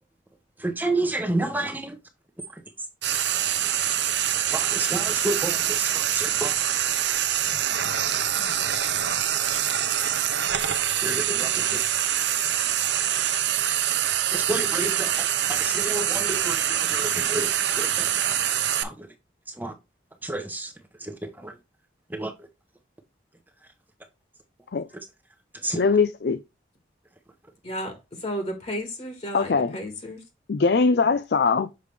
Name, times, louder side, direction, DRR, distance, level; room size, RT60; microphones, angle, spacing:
voice 1, 0.6-2.0 2.5-2.9 3.6-3.7 4.1-4.2 4.5-6.7 11.0-11.8 13.3-13.4 14.3-18.2 18.8-19.1 19.5-19.7 20.2-20.7 21.0-21.6 22.1-22.5 25.5-25.9, right 1 dB, 10° right, 0.9 m, -31 dB
Frying (food), 3.0-18.8, right 10 dB, 65° right, 0.8 m, -25 dB
voice 2, 25.8-26.4 29.3-29.8 30.5-31.7, left 4 dB, 55° left, 0.4 m, -21 dB
voice 3, 27.6-30.2, equal, 35° left, 1.7 m, -33 dB
6.7 x 5.0 x 3.3 m
head